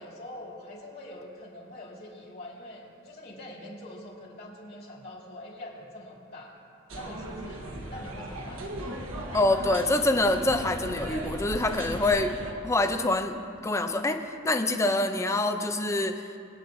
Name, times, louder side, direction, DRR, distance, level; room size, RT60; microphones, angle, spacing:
voice 1, 0.0-6.6 6.9-8.6, left 1 dB, 45° left, -4 dB, 2.8 m, -44 dB
sound 1, 6.9-12.5, right 1 dB, 70° right, 1.3 m, -37 dB
voice 2, 9.3-12.4 12.6-13.3 13.6-16.2, left 2 dB, 15° left, 7 dB, 0.5 m, -25 dB
22.0 x 9.5 x 2.6 m, 2.5 s
head